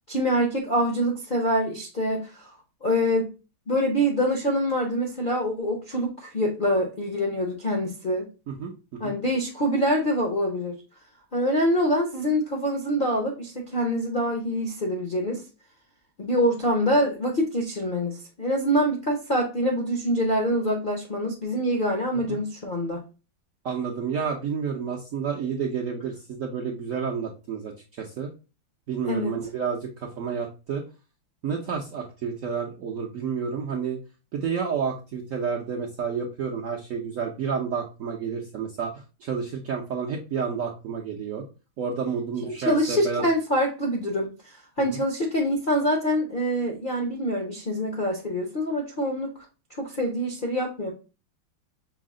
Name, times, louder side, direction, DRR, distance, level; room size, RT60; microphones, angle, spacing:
voice 1, 0.1-2.5 2.8-3.3 3.7-8.3 9.0-10.8 11.3-15.4 16.2-23.0 29.0-29.3 42.5-49.3 49.8-50.9, equal, 55° left, 0 dB, 0.5 m, -25 dB
voice 2, 8.5-9.1 22.3-22.4 23.6-28.3 28.9-30.8 31.4-34.0 34.3-41.4 41.8-43.2 44.9-45.0, right 6 dB, 70° right, -1 dB, 0.8 m, -30 dB
5.6 x 2.0 x 3.5 m, 0.31 s
omnidirectional pair, 2.1 m